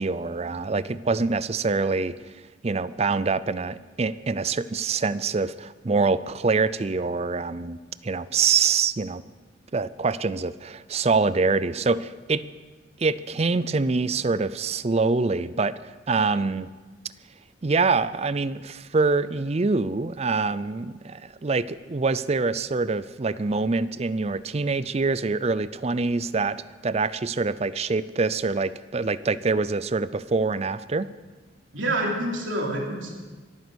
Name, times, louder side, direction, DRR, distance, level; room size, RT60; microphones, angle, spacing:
voice 1, 0.0-2.1 2.6-9.2 9.7-12.4 13.0-16.7 17.6-31.1, right 4 dB, 35° right, 16 dB, 0.5 m, -25 dB
voice 2, 31.7-33.1, right 1 dB, 90° right, -1 dB, 3.3 m, -27 dB
23.5 x 9.4 x 6.3 m, 1.3 s
head